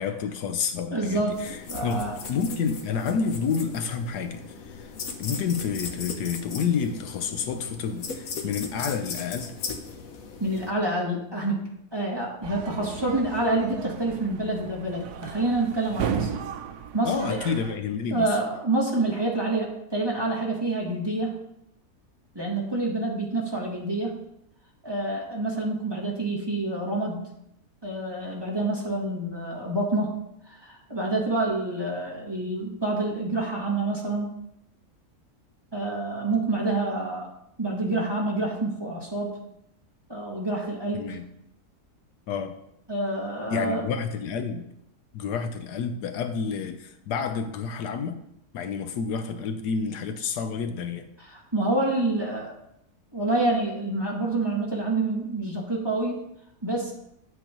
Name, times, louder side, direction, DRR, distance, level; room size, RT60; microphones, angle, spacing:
voice 1, 0.0-4.4 4.7-4.9 5.2-9.5 17.0-18.4 40.9-41.2 42.3-42.5 43.5-44.6 45.1-48.2 48.5-51.1, left 6 dB, 80° left, 8 dB, 1.3 m, -29 dB
voice 2, 0.9-1.4 1.7-2.2 10.4-11.6 11.9-16.3 16.9-17.4 18.1-21.4 22.3-24.2 24.8-27.2 27.8-30.2 30.5-34.3 35.7-37.3 37.6-39.4 40.1-41.2 42.9-43.9 51.5-52.5 53.1-56.2 56.6-56.9, right 2 dB, 15° right, -3 dB, 1.9 m, -27 dB
sound 1, 1.3-10.7, left 5 dB, 60° left, 1.3 m, -38 dB
sound 2, 12.4-17.8, right 7 dB, 80° right, 1.2 m, -35 dB
10.0 x 7.8 x 3.0 m, 0.76 s
omnidirectional pair, 1.7 m